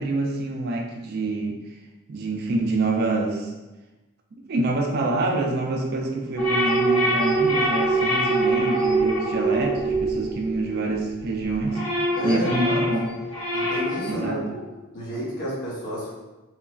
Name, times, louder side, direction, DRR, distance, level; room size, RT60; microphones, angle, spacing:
voice 1, 0.0-1.8 2.1-3.5 4.3-13.1 14.1-14.4, right 2 dB, 45° right, 1 dB, 0.3 m, -26 dB
sound 1, 6.4-11.0 11.4-14.2, right 2 dB, 85° left, 1.3 m, -24 dB
voice 2, 12.2-12.8 13.5-14.6 14.9-16.1, equal, 50° left, -8 dB, 0.9 m, -31 dB
2.9 x 2.3 x 2.3 m, 1.1 s
head